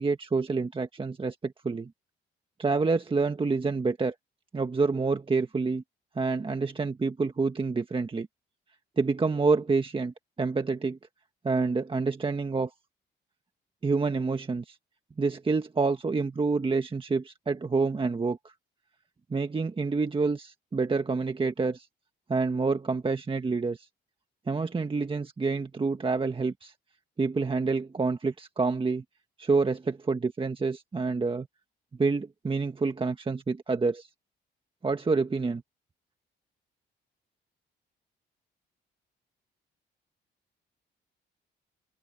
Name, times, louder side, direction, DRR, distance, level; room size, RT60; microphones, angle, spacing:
voice 1, 0.0-1.9 2.6-4.1 4.5-5.8 6.1-8.3 9.0-11.0 11.4-12.7 13.8-14.8 15.2-18.4 19.3-21.9 22.3-23.9 24.5-26.7 27.2-29.0 29.4-31.5 32.0-34.1 34.8-35.6, right 4 dB, 25° right, 1.5 m, -27 dB
open air
cardioid pair, 90°, 20 cm